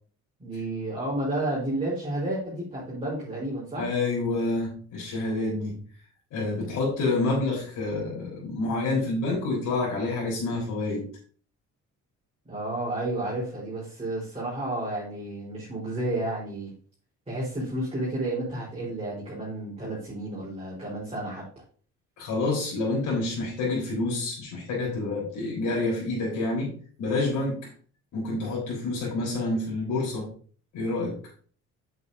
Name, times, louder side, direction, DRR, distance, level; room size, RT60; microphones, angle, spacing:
voice 1, 0.4-4.0 12.5-16.7 17.3-21.4, right 1 dB, 20° right, -7 dB, 3.9 m, -31 dB
voice 2, 3.8-5.8 6.3-11.0 22.2-26.7 27.0-27.7 28.1-30.3 30.7-31.2, left 2 dB, 85° left, -3 dB, 3.9 m, -28 dB
8.3 x 7.8 x 2.6 m, 0.44 s
cardioid pair, 90°, 30 cm